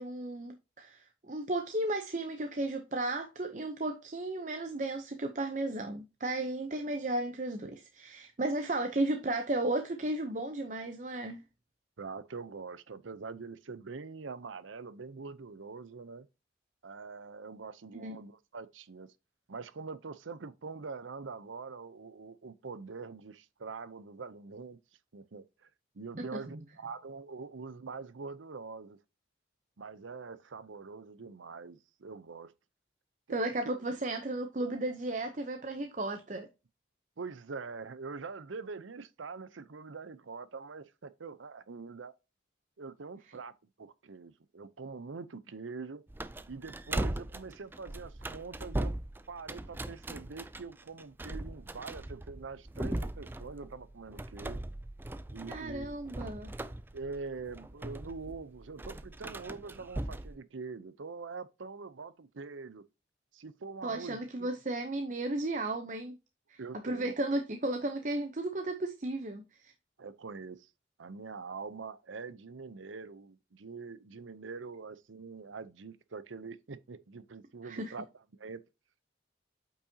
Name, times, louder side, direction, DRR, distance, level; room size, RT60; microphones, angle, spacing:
voice 1, 0.0-11.4 17.9-18.2 26.2-26.6 33.3-36.5 55.5-56.5 63.8-66.1 66.5-69.7 77.6-77.9, right 2 dB, 40° right, 0.7 m, -34 dB
voice 2, 12.0-16.3 16.8-19.1 19.5-24.8 25.1-25.7 25.9-29.0 29.8-32.5 33.3-33.4 37.2-42.1 42.8-43.5 43.8-46.0 46.5-49.0 49.3-54.6 55.3-56.0 56.9-62.8 63.3-64.5 66.6-67.1 70.0-70.7 71.0-78.1 78.3-78.6, right 4 dB, 90° right, 0.7 m, -44 dB
sound 1, 46.1-60.4, right 1 dB, 10° right, 0.3 m, -39 dB
8.6 x 5.6 x 2.8 m
head